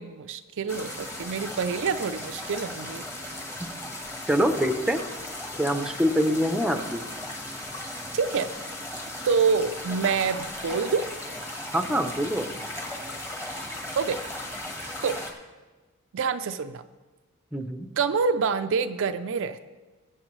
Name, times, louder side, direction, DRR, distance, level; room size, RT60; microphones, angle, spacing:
voice 1, 0.0-3.1 8.1-8.5 9.2-11.1 14.0-14.2 15.0-15.2 16.1-16.8 18.0-19.7, right 5 dB, 60° right, 9 dB, 0.4 m, -26 dB
sound 1, 0.7-15.3, left 1 dB, 15° left, 1.3 m, -37 dB
voice 2, 4.3-5.0 5.6-7.0 11.7-12.5 17.5-17.9, equal, 5° right, 6 dB, 0.7 m, -25 dB
20.5 x 8.0 x 3.1 m, 1.3 s
head